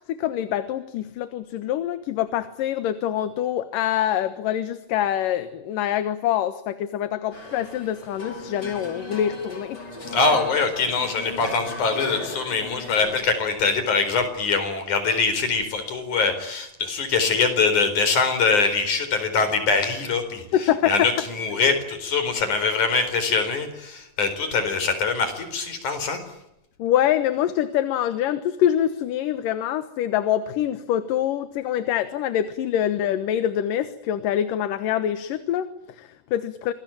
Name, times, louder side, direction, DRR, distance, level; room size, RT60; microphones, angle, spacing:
voice 1, 0.1-9.8 20.5-21.1 26.8-36.7, left 11 dB, 75° left, 11 dB, 2.8 m, -25 dB
sound 1, 7.3-13.2, left 2 dB, 30° left, 5.5 m, -37 dB
voice 2, 10.1-20.4 20.9-26.2, left 4 dB, 60° left, 9 dB, 5.8 m, -23 dB
27.0 x 21.0 x 9.0 m, 0.84 s
omnidirectional pair, 3.9 m